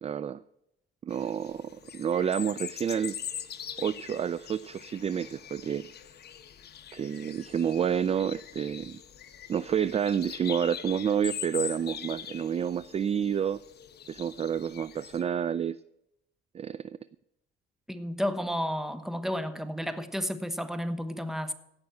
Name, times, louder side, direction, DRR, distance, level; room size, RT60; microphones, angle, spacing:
voice 1, 0.0-0.4 1.0-3.2 3.8-5.9 6.9-9.0 9.5-13.6 14.1-15.8 16.5-17.0, right 8 dB, 30° right, 0.3 m, -29 dB
sound 1, 1.1-15.2, left 9 dB, 55° left, 1.0 m, -42 dB
voice 2, 17.9-21.5, equal, ahead, 1.1 m, -32 dB
16.5 x 6.0 x 7.6 m
cardioid pair, 90°, 20 cm